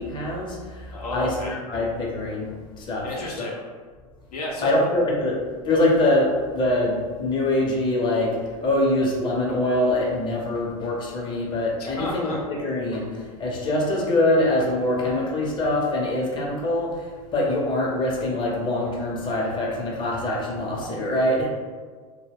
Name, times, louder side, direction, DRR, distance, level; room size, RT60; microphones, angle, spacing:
voice 1, 0.0-3.1 3.4-3.5 4.6-5.3 5.6-21.5, left 1 dB, 25° left, -2 dB, 0.6 m, -24 dB
voice 2, 0.9-1.6 3.0-3.6 4.3-4.9 11.8-12.4, left 2 dB, 75° left, -2 dB, 0.6 m, -32 dB
2.2 x 2.1 x 3.4 m, 1.5 s
hypercardioid pair, 90°, 19 cm